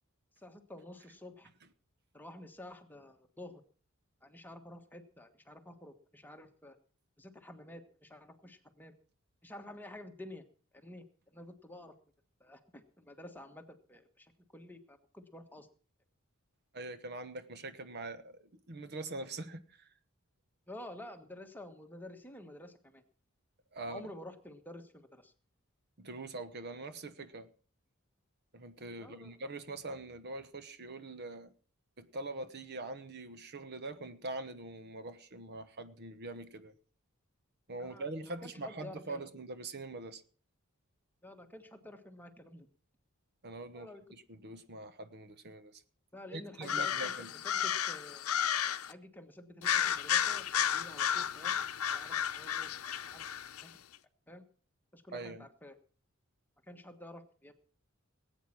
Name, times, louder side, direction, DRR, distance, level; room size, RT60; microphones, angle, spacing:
voice 1, 0.4-1.5 2.1-3.6 4.2-6.8 7.2-8.9 9.4-10.4 10.7-11.9 12.4-15.7 20.7-23.0 23.9-25.3 29.0-29.3 37.8-39.3 41.2-42.7 43.7-44.0 46.1-47.1 47.4-48.3 48.9-51.6 51.9-52.7 53.1-53.2 53.6-53.8 54.3-54.4 54.9-55.7 56.7-57.5, left 1 dB, 10° left, 1.4 m, -50 dB
voice 2, 16.7-19.9 23.7-24.1 26.0-27.5 28.5-31.5 32.0-36.7 37.7-40.2 43.4-45.8 46.3-47.3 55.1-55.5, right 2 dB, 50° right, 1.1 m, -43 dB
sound 1, 46.6-48.9 49.6-53.6, left 9 dB, 90° left, 0.7 m, -33 dB
19.5 x 8.9 x 6.0 m
head